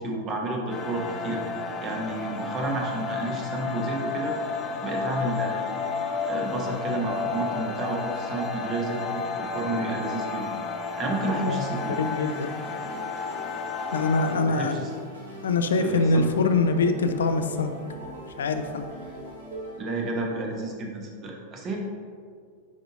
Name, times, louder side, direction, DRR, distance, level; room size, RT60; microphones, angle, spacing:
voice 1, 0.0-1.4 1.8-4.4 4.8-5.7 6.3-10.5 11.0-12.0 12.6-12.8 14.3-16.3 19.8-21.8, right 2 dB, 30° right, 1 dB, 1.0 m, -31 dB
sound 1, 0.7-14.4, left 4 dB, 25° left, 0.6 m, -32 dB
sound 2, 11.8-19.8, right 1 dB, 70° right, 1.4 m, -42 dB
voice 2, 12.0-12.5 13.9-14.8 15.4-17.7 18.4-18.9, left 3 dB, 65° left, 7 dB, 0.4 m, -24 dB
9.9 x 3.9 x 2.6 m, 2.1 s
figure-of-eight pair, 90°, 0 cm